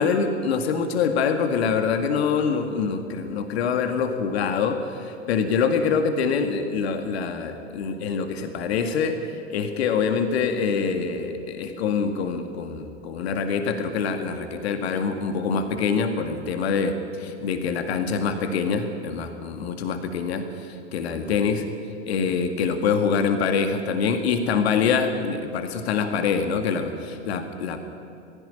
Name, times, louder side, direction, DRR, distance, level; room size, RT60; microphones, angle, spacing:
voice 1, 0.0-21.6 22.1-27.8, left 5 dB, 60° left, 7 dB, 2.0 m, -25 dB
21.0 x 15.5 x 10.0 m, 2.8 s
figure-of-eight pair, 100°, 36 cm